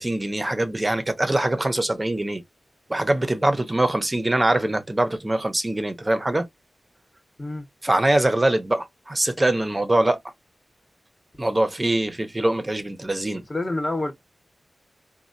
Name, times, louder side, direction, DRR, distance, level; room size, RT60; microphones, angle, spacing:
voice 1, 0.0-2.4 2.9-6.5 7.8-10.2 11.4-13.4, right 1 dB, 20° right, 0.7 m, -23 dB
voice 2, 13.5-14.1, left 2 dB, 25° left, 0.8 m, -27 dB
4.1 x 2.2 x 2.5 m
wide cardioid pair, 110°, 0 cm